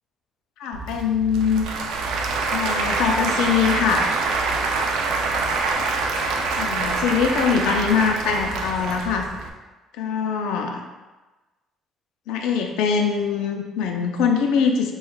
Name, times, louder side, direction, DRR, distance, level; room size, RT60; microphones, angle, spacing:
voice 1, 0.6-1.6 2.5-4.1 6.6-9.3 10.0-10.8 12.3-14.9, left 6 dB, 85° left, 3 dB, 0.4 m, -22 dB
Applause / Crowd, 0.7-9.5, right 3 dB, 80° right, 0.4 m, -25 dB
6.2 x 2.3 x 2.2 m, 1.2 s
cardioid pair, 90°, 0 cm